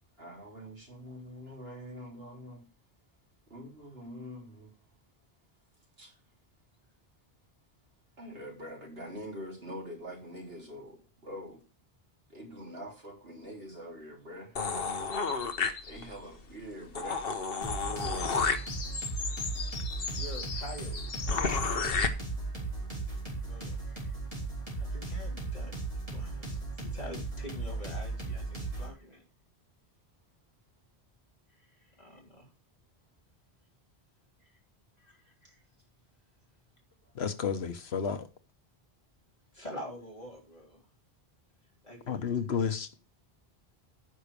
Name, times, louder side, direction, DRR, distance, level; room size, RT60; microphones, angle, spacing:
voice 1, 0.2-2.7 3.5-4.7 6.0-6.2 8.2-11.6 12.3-14.6 15.8-17.2, equal, 75° right, 3.7 m, -44 dB
sound 1, 14.6-16.2 16.6-16.7 16.9-22.1, left 5 dB, 65° left, 1.3 m, -32 dB
sound 2, 17.6-28.9, right 3 dB, 35° right, 4.0 m, -37 dB
voice 2, 20.2-21.2 23.4-24.1 24.8-25.7 26.1-29.2 32.0-32.5 35.0-35.2 35.5-35.6 39.5-40.8 41.8-42.3, equal, 40° left, 3.8 m, -46 dB
voice 3, 37.1-38.3 42.1-43.0, left 7 dB, 90° left, 1.3 m, -31 dB
9.8 x 6.1 x 6.9 m
omnidirectional pair, 1.0 m